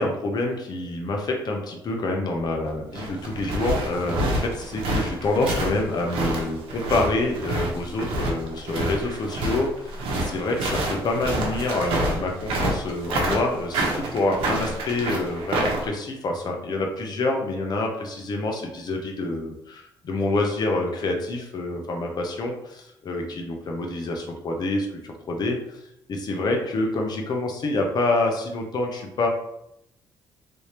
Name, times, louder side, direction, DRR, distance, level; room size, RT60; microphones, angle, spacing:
voice 1, 0.0-9.7 10.1-25.6 26.1-29.3, left 2 dB, 50° left, 2 dB, 0.8 m, -27 dB
sound 1, 2.7-15.9, right 1 dB, 85° right, 0.9 m, -27 dB
3.4 x 2.8 x 3.2 m, 0.80 s
cardioid pair, 100°, 9 cm